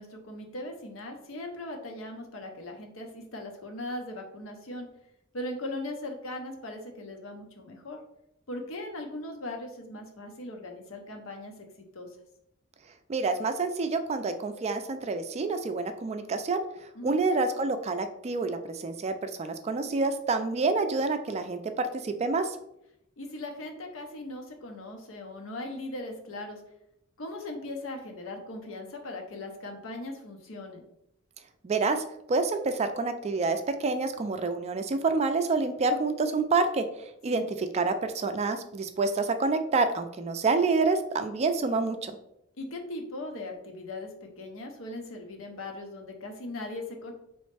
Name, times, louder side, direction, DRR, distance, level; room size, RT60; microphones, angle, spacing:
voice 1, 0.0-4.9 5.3-8.0 8.5-11.5 11.8-12.1 16.9-17.2 23.2-26.6 27.2-30.8 37.3-37.4 42.6-47.1, left 1 dB, 80° left, 3 dB, 0.8 m, -39 dB
voice 2, 13.1-16.6 17.0-22.6 31.6-32.0 32.3-36.8 37.2-42.1, right 3 dB, 30° right, 8 dB, 0.3 m, -28 dB
4.2 x 3.1 x 3.3 m, 0.79 s
head